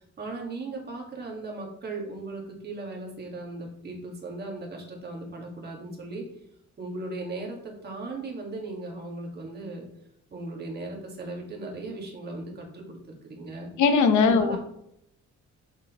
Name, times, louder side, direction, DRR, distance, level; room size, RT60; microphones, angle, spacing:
voice 1, 0.2-6.2 6.8-9.9 10.3-13.0 13.2-13.7 14.2-14.6, right 2 dB, 35° right, -1 dB, 1.8 m, -37 dB
voice 2, 13.8-14.6, left 5 dB, 80° left, 8 dB, 0.9 m, -20 dB
6.9 x 6.0 x 3.0 m, 0.77 s
cardioid pair, 170°, 29 cm